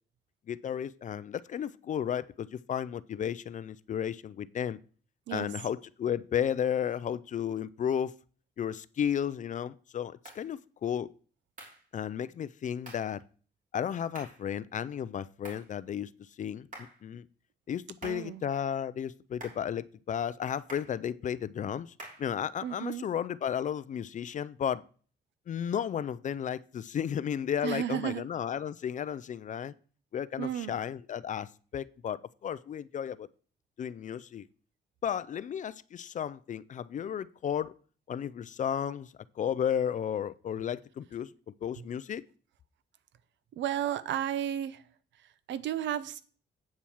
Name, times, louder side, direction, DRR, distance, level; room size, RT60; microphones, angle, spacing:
voice 1, 0.5-4.8 5.3-8.1 8.6-11.1 11.9-13.2 13.7-16.1 16.4-17.2 17.7-21.9 22.2-24.8 25.5-29.7 30.1-33.3 33.8-34.5 35.0-37.7 38.1-41.3 41.6-42.2, left 9 dB, 45° left, 17 dB, 0.4 m, -33 dB
sound 1, 10.3-10.5 11.6-11.9 12.9-13.1 14.2-14.5 15.5-15.7 16.7-17.0 18.0-18.3 19.4-19.7 20.7-21.0 22.0-22.3, right 1 dB, 45° right, 3.0 m, -47 dB
voice 2, 18.0-18.4 22.6-23.1 27.6-28.2 30.4-30.7 43.6-44.8 45.2-46.2, right 10 dB, 85° right, 15 dB, 0.6 m, -33 dB
8.5 x 4.5 x 7.1 m, 0.42 s
cardioid pair, 120°, 18 cm